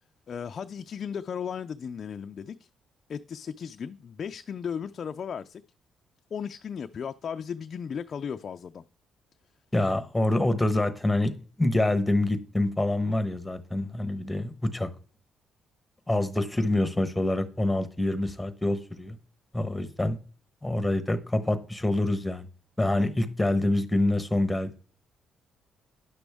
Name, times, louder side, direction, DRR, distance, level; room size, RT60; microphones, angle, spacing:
voice 1, 0.3-2.7 3.1-5.6 6.3-8.8 23.0-23.1, left 7 dB, 50° left, 0.3 m, -36 dB
voice 2, 9.7-11.3 11.6-14.9 16.1-19.2 19.5-20.2 20.6-22.5 22.8-24.7, left 1 dB, 10° left, 1.0 m, -26 dB
9.8 x 6.1 x 3.5 m
cardioid pair, 90°, 0 cm